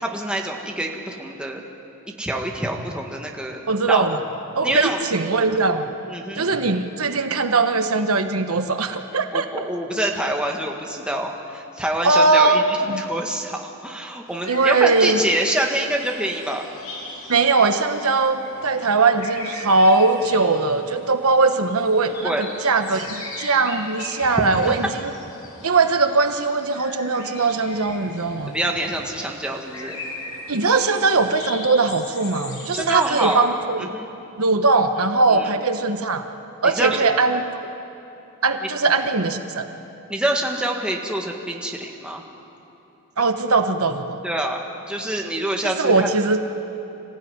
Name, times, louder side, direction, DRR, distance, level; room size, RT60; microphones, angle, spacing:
voice 1, 0.0-1.6 2.2-3.6 3.9-4.1 4.6-5.0 6.0-6.4 9.3-16.7 22.1-22.4 24.4-24.7 28.5-30.0 32.7-33.5 33.8-34.1 35.3-35.5 36.6-37.0 38.6-38.7 40.1-42.2 44.2-46.1, right 1 dB, 5° right, 0 dB, 1.9 m, -26 dB
voice 2, 3.7-4.2 4.6-5.9 6.4-9.7 12.0-13.0 14.5-15.2 17.3-25.1 25.6-28.5 30.5-33.9 34.4-36.2 36.6-37.4 38.4-39.7 43.2-44.2 45.6-46.4, right 3 dB, 70° right, 7 dB, 1.1 m, -20 dB
sound 1, 14.3-33.4, left 2 dB, 70° left, 5.1 m, -39 dB
25.5 x 15.5 x 9.6 m, 2.9 s
head